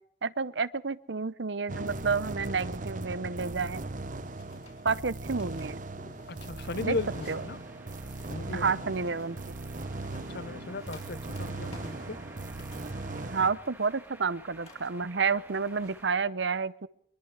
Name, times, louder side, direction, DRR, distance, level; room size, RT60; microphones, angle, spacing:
voice 1, 0.2-3.8 4.8-5.8 6.8-7.0 7.3-7.4 8.5-9.4 13.3-16.9, right 5 dB, 70° right, 18 dB, 0.8 m, -30 dB
sound 1, 1.7-13.5, right 2 dB, 45° right, 1.2 m, -38 dB
sound 2, 3.7-16.1, left 3 dB, 35° left, 6.0 m, -59 dB
voice 2, 6.3-7.6 8.3-8.7 10.3-12.2, left 3 dB, 60° left, 17 dB, 0.8 m, -36 dB
sound 3, 6.6-16.2, right 1 dB, 10° right, 1.7 m, -52 dB
24.0 x 23.0 x 4.9 m, 0.70 s
head